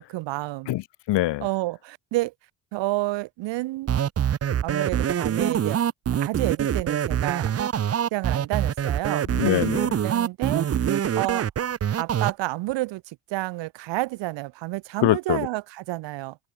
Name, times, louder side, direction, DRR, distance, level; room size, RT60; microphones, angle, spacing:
voice 1, 0.0-0.7 1.4-2.3 2.7-3.9 4.6-5.8 6.2-7.5 8.1-9.3 10.0-10.8 11.2-11.5 12.0-16.4, right 19 dB, 75° right, 2.8 m, -30 dB
voice 2, 0.7-1.5 9.3-10.0 15.0-15.5, left 16 dB, 70° left, 5.2 m, -24 dB
sound 1, 3.9-12.3, right 9 dB, 35° right, 1.0 m, -24 dB
cardioid pair, 120°, 43 cm